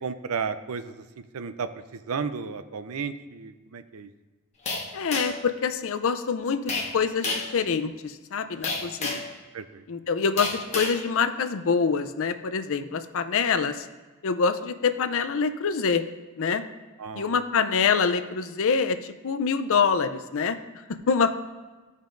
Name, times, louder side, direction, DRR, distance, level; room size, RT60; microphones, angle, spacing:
voice 1, 0.0-1.0 1.3-4.1 8.8-8.9 9.5-9.8 17.0-17.3, right 5 dB, 70° right, 11 dB, 0.5 m, -33 dB
sound 1, 4.7-5.5 6.7-6.9 7.2-7.5 8.6-9.3 10.4-11.0, left 3 dB, 30° left, 1.3 m, -30 dB
voice 2, 4.9-9.3 9.9-13.9 14.2-16.0 16.4-16.6 17.2-20.6 21.1-21.4, left 5 dB, 65° left, 10 dB, 0.5 m, -25 dB
14.5 x 5.4 x 2.5 m, 1.3 s
head